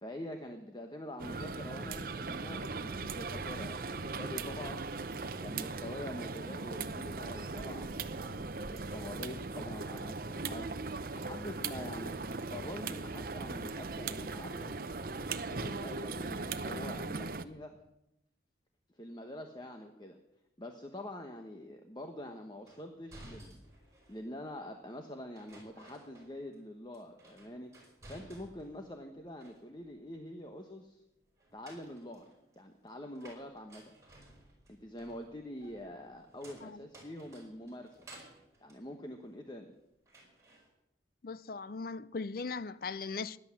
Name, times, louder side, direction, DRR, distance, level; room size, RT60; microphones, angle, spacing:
voice 1, 0.0-4.9 5.4-12.2 12.5-14.8 15.5-17.8 18.9-20.2 20.6-23.6 24.1-27.7 28.1-31.0 31.5-32.3 32.6-33.9 34.7-38.1 38.6-39.7, left 1 dB, 25° left, 1.1 m, -45 dB
sound 1, 1.2-17.5, right 3 dB, 55° right, 0.8 m, -39 dB
sound 2, 22.7-24.3 25.3-26.6 26.9-28.8 29.1-30.0 31.4-39.7 40.1-40.7, right 1 dB, 15° right, 5.2 m, -56 dB
voice 2, 41.2-43.4, left 4 dB, 55° left, 0.5 m, -39 dB
17.0 x 10.5 x 7.5 m
head